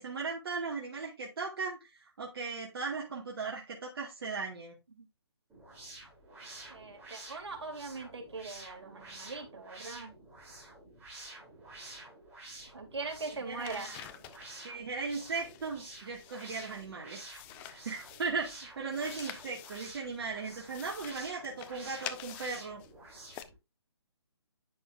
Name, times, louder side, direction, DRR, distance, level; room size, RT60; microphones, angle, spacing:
voice 1, 0.0-4.8 13.3-14.1 14.6-17.2 17.6-22.8, right 4 dB, 55° right, 2.1 m, -38 dB
sound 1, 5.5-23.5, right 2 dB, 15° right, 3.4 m, -50 dB
voice 2, 6.7-10.1 12.7-13.9, right 3 dB, 70° right, 2.7 m, -41 dB
sound 2, 13.3-14.5 15.1-16.9 17.2-18.6 18.9-20.2 20.5-22.9 23.3-23.4, left 11 dB, 10° left, 0.3 m, -48 dB
9.6 x 6.0 x 2.6 m
figure-of-eight pair, 145°, 14 cm